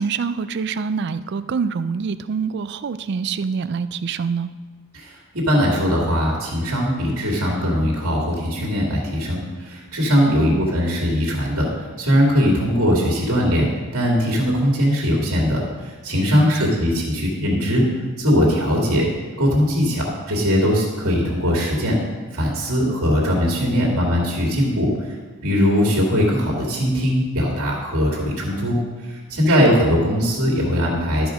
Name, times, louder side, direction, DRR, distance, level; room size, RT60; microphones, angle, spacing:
voice 1, 0.0-4.5 10.3-10.7 16.3-16.7 29.5-29.7, right 5 dB, 50° right, 13 dB, 0.3 m, -26 dB
voice 2, 4.9-13.7 13.9-17.8 18.2-19.1 19.4-22.0 22.3-25.2 25.4-28.8 29.0-31.3, equal, 75° right, -2 dB, 2.3 m, -20 dB
13.0 x 4.9 x 5.0 m, 1.3 s
head